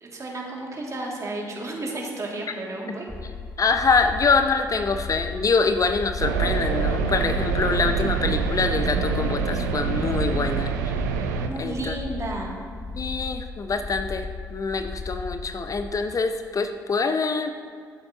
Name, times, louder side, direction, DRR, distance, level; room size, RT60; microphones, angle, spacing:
voice 1, 0.0-3.1 11.5-12.5, right 2 dB, 35° right, -2 dB, 2.2 m, -32 dB
sound 1, 3.1-15.9, left 4 dB, 15° left, 1.3 m, -36 dB
voice 2, 3.6-10.9 11.6-12.0 12.9-17.5, left 4 dB, 40° left, 8 dB, 0.6 m, -25 dB
sound 2, 6.2-11.5, right 6 dB, 80° right, 0.5 m, -25 dB
14.5 x 7.6 x 2.8 m, 2.1 s
figure-of-eight pair, 45°, 9 cm